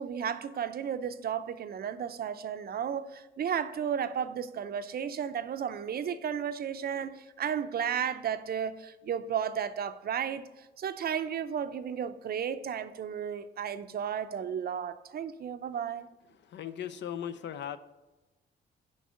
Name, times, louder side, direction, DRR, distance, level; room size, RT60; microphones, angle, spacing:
voice 1, 0.0-16.1, right 8 dB, 50° right, 11 dB, 0.6 m, -33 dB
voice 2, 16.4-17.8, left 9 dB, 65° left, 12 dB, 0.6 m, -38 dB
6.5 x 5.3 x 6.8 m, 1.1 s
cardioid pair, 90°, 20 cm